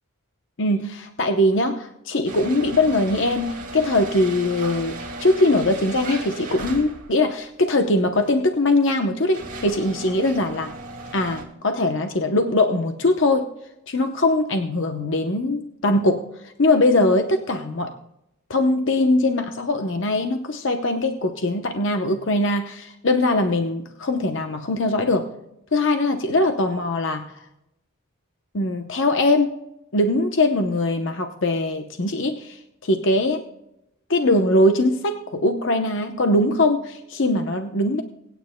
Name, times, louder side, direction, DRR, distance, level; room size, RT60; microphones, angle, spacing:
voice 1, 0.6-10.7 11.1-13.5 13.9-17.9 18.5-25.3 25.7-27.2 28.5-29.5 29.9-33.4 34.1-38.0, left 2 dB, 55° left, 6 dB, 0.8 m, -21 dB
sound 1, 2.3-7.3 8.2-8.3 9.0-11.4, right 2 dB, 35° right, 2.3 m, -36 dB
24.5 x 9.4 x 2.2 m, 0.83 s
head